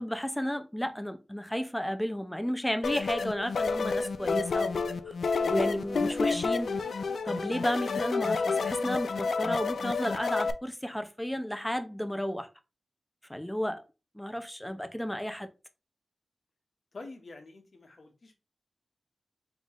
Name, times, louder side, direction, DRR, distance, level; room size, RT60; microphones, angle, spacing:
voice 1, 0.0-5.1 5.4-6.8 7.3-12.5 13.3-13.8 14.1-15.5, equal, 5° left, 0.6 m, -33 dB
sound 1, 2.8-10.5, left 4 dB, 85° left, 0.4 m, -29 dB
voice 2, 16.9-18.4, left 3 dB, 60° left, 1.1 m, -47 dB
3.8 x 3.8 x 3.0 m
wide cardioid pair, 70°, 0 cm